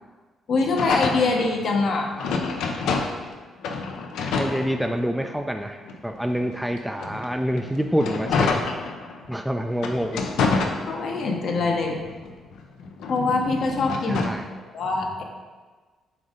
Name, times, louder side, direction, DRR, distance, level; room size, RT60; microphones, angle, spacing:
voice 1, 0.5-2.1 10.9-12.0 13.1-15.2, left 3 dB, 65° left, 1 dB, 1.0 m, -24 dB
sound 1, 0.8-3.3 3.6-5.3 5.8-9.3 9.7-11.4 11.8-14.5, left 4 dB, 85° left, 0.6 m, -28 dB
voice 2, 4.4-8.7 9.3-10.2 14.1-14.4, equal, 5° right, 4 dB, 0.3 m, -27 dB
7.7 x 2.6 x 5.1 m, 1.4 s
cardioid pair, 90°, 0 cm